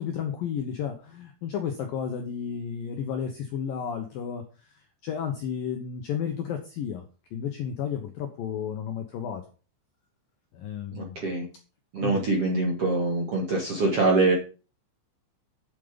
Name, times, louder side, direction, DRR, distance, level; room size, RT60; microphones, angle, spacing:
voice 1, 0.0-4.4 5.0-7.0 7.3-9.4 10.5-11.2 12.0-12.2, left 8 dB, 75° left, 5 dB, 2.1 m, -32 dB
voice 2, 10.9-11.5 11.9-14.3, right 2 dB, 50° right, -1 dB, 1.9 m, -24 dB
9.4 x 7.4 x 5.2 m, 0.35 s
omnidirectional pair, 5.5 m